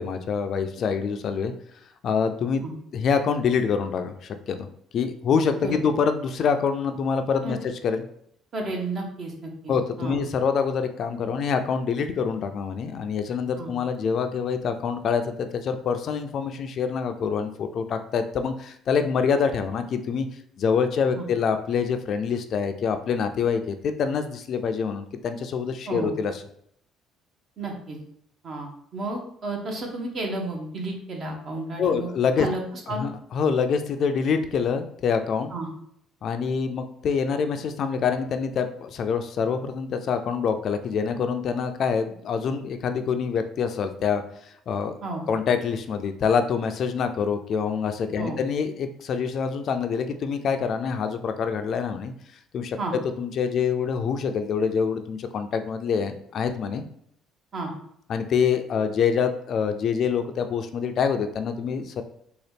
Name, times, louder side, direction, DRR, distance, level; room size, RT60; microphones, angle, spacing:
voice 1, 0.0-1.5 2.0-2.6 2.9-4.7 4.9-8.0 9.7-20.3 20.6-26.4 31.8-32.5 32.9-35.5 36.2-44.2 44.7-45.0 45.3-52.1 52.5-56.8 58.1-62.0, left 6 dB, 55° left, 7 dB, 0.3 m, -26 dB
voice 2, 8.5-10.2 13.6-13.7 21.1-21.3 25.9-26.1 27.6-28.0 28.4-32.1 32.4-32.6 32.9-33.0 35.5-35.7 45.0-45.2 48.2-48.4 52.8-52.9 57.5-57.7, right 2 dB, 45° right, 1 dB, 1.0 m, -32 dB
3.8 x 2.3 x 3.4 m, 0.69 s
cardioid pair, 100°, 0 cm